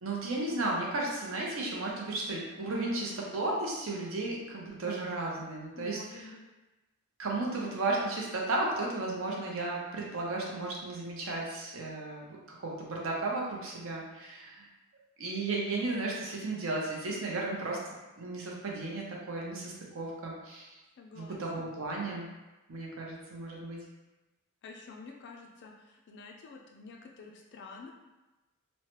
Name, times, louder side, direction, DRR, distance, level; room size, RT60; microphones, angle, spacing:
voice 1, 0.0-6.3 7.2-14.7 15.2-17.8 18.2-20.7 21.2-22.3 22.7-23.8, right 2 dB, 60° right, -2 dB, 0.6 m, -34 dB
voice 2, 5.8-6.4 21.0-21.7 24.6-27.9, left 4 dB, 50° left, 1 dB, 0.3 m, -49 dB
3.0 x 2.1 x 2.9 m, 1.1 s
head